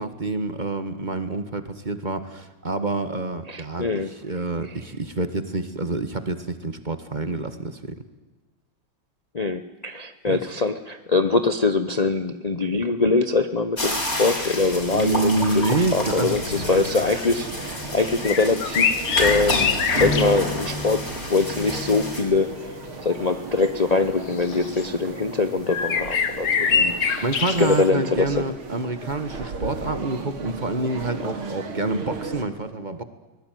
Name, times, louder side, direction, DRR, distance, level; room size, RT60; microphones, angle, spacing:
voice 1, 0.0-7.9 10.2-10.4 14.9-16.4 16.7-16.8 26.6-33.0, right 2 dB, 25° right, 10 dB, 1.5 m, -27 dB
voice 2, 3.5-4.1 4.7-4.8 9.3-21.0 21.3-26.5 26.8-26.9 27.6-28.4, left 3 dB, 45° left, 9 dB, 0.5 m, -23 dB
sound 1, 13.8-22.2, left 1 dB, 30° left, 6.0 m, -29 dB
sound 2, 15.0-15.1 15.5-15.6 16.0-16.7 17.1-17.3 18.0-20.4 22.5-22.6 23.6-23.7 24.3-24.9 25.7-27.8, left 6 dB, 75° left, 2.5 m, -24 dB
sound 3, 15.0-32.4, right 4 dB, 90° right, 3.3 m, -36 dB
23.5 x 20.0 x 9.3 m, 1.2 s
omnidirectional pair, 2.3 m